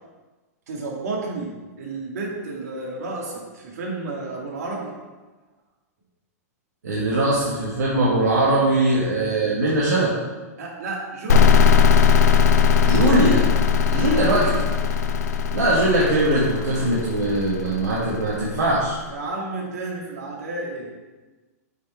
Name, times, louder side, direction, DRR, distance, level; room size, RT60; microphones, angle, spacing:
voice 1, 0.7-4.9 10.6-11.6 14.0-14.7 19.1-20.9, right 3 dB, 70° right, -2 dB, 2.2 m, -32 dB
voice 2, 6.8-10.2 12.8-14.5 15.5-19.0, right 1 dB, 85° right, -6 dB, 1.6 m, -21 dB
sound 1, 11.3-18.8, left 6 dB, 75° left, 0.6 m, -19 dB
8.1 x 4.5 x 4.5 m, 1.3 s
hypercardioid pair, 125°, 9 cm